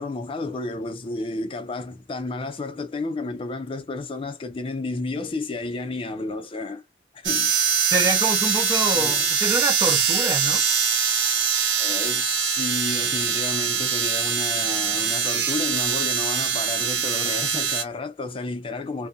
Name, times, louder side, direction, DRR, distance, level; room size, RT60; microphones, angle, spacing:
voice 1, 0.0-6.8 7.1-7.5 8.9-9.3 11.8-19.1, left 3 dB, 30° left, 0.4 m, -31 dB
sound 1, 7.2-17.8, right 7 dB, 85° right, 0.7 m, -23 dB
sound 2, 7.3-13.4, right 4 dB, 50° right, 1.2 m, -40 dB
voice 2, 7.9-10.6, right 2 dB, 20° right, 0.5 m, -26 dB
2.6 x 2.1 x 2.4 m
head